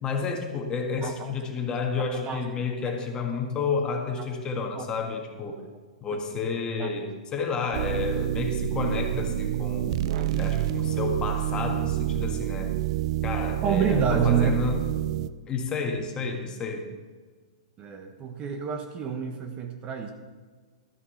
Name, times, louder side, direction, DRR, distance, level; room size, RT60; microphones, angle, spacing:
voice 1, 0.0-5.6 6.0-12.7 13.2-14.8 15.5-16.9, left 5 dB, 20° left, 3 dB, 1.7 m, -31 dB
voice 2, 1.0-1.3 2.1-2.9 4.7-4.9 6.8-6.9 13.6-14.5 17.8-20.1, right 7 dB, 25° right, 5 dB, 1.1 m, -28 dB
sound 1, 7.7-15.3, right 13 dB, 55° right, 0.4 m, -28 dB
12.5 x 7.3 x 5.7 m, 1.4 s
hypercardioid pair, 130°, 4 cm